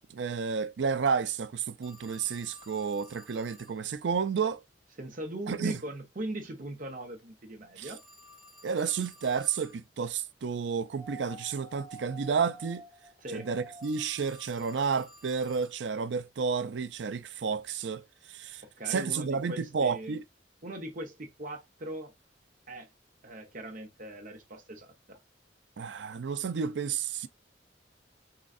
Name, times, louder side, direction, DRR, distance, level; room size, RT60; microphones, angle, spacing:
voice 1, 0.1-4.6 5.5-5.8 7.8-7.9 8.6-12.8 13.3-20.2 25.8-27.3, right 6 dB, 75° right, 0.4 m, -31 dB
Telephone, 1.8-3.8 7.8-9.8 13.8-15.8, left 1 dB, ahead, 0.7 m, -55 dB
voice 2, 5.0-8.0 13.2-13.5 18.6-20.2 20.6-22.1 22.7-22.9 23.2-25.2, right 1 dB, 45° right, 1.0 m, -40 dB
sound 1, 10.9-14.1 15.5-15.6, right 2 dB, 55° left, 1.7 m, -48 dB
3.8 x 3.1 x 2.4 m
head